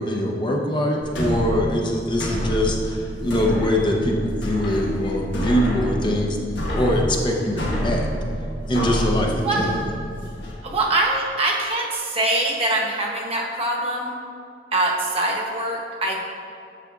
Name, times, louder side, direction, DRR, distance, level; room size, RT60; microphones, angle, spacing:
voice 1, 0.0-6.4 6.7-8.1 8.7-9.7, equal, 25° left, 0 dB, 0.7 m, -23 dB
sound 1, 1.0-10.5, equal, 85° left, 1.4 m, -28 dB
voice 2, 9.4-9.8 10.6-14.1 14.7-16.2, right 2 dB, 35° right, -2 dB, 1.0 m, -23 dB
10.0 x 7.2 x 2.4 m, 2.5 s
head